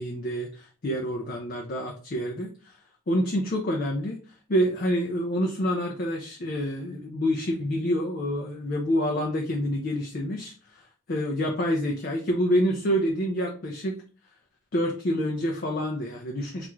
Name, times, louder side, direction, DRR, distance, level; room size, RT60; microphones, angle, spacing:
voice 1, 0.0-2.7 3.1-4.2 4.5-10.8 11.1-14.0 14.7-16.7, equal, 45° left, 1 dB, 0.4 m, -27 dB
3.4 x 2.5 x 3.0 m, 0.38 s
head